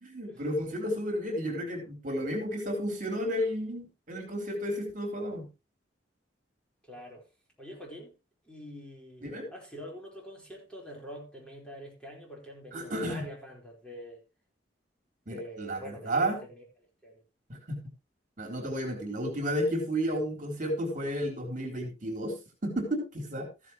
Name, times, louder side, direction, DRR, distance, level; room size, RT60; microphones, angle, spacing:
voice 1, 0.0-5.5 9.2-9.5 12.7-13.3 15.3-16.4 17.5-17.8 18.4-23.5, equal, 45° right, 3.9 m, -32 dB
voice 2, 6.8-7.2 7.6-8.1 8.4-14.2 15.3-16.6 17.0-17.2, equal, 5° left, 4.6 m, -45 dB
14.5 x 11.0 x 3.1 m
head